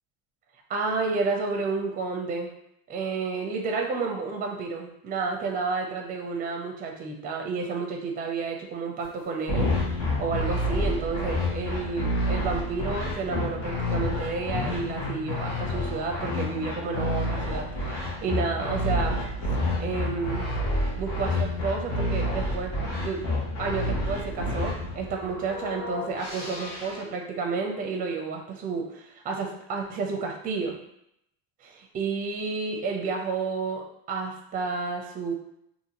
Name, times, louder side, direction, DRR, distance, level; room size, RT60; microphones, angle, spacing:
voice 1, 0.7-2.5 2.9-19.5 19.8-20.5 21.0-23.2 23.6-30.8 31.6-35.3, right 4 dB, 25° right, 1 dB, 0.5 m, -31 dB
sound 1, 9.0-9.1 9.5-27.0, left 1 dB, 65° left, 1.1 m, -29 dB
2.7 x 2.6 x 2.8 m, 0.77 s
cardioid pair, 140°, 33 cm